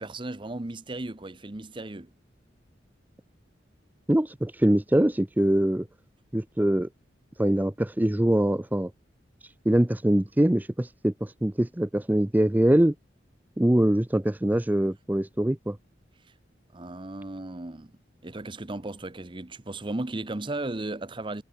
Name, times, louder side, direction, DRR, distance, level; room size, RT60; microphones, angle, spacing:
voice 1, 0.0-2.1 16.7-17.9 18.2-21.4, right 2 dB, 30° right, 0.9 m, -35 dB
voice 2, 4.1-5.9 6.3-6.9 7.4-8.9 9.4-12.9 13.6-15.8, right 1 dB, 10° right, 0.5 m, -23 dB
head